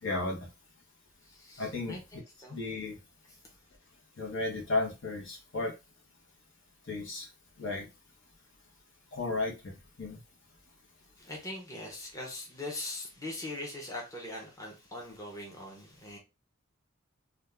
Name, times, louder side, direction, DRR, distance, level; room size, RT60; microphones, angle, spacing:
voice 1, 0.0-0.5 1.6-2.2 2.5-3.0 4.2-5.8 6.9-7.3 7.6-7.9 9.1-10.2, left 2 dB, 60° left, -1 dB, 0.9 m, -34 dB
voice 2, 1.3-2.6 11.2-16.2, left 1 dB, 15° left, -1 dB, 0.7 m, -41 dB
2.5 x 2.3 x 3.3 m, 0.27 s
head